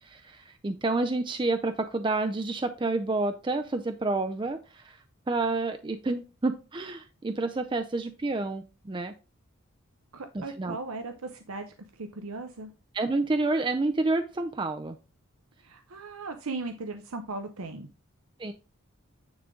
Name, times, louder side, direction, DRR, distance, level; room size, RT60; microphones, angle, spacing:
voice 1, 0.0-5.0 5.3-9.1 10.3-10.8 12.9-15.0 18.4-18.5, right 3 dB, 20° right, 7 dB, 0.4 m, -29 dB
voice 2, 10.1-11.7 11.9-12.7 15.6-17.9, right 3 dB, 85° right, 7 dB, 0.8 m, -37 dB
9.6 x 3.8 x 3.6 m, 0.33 s
head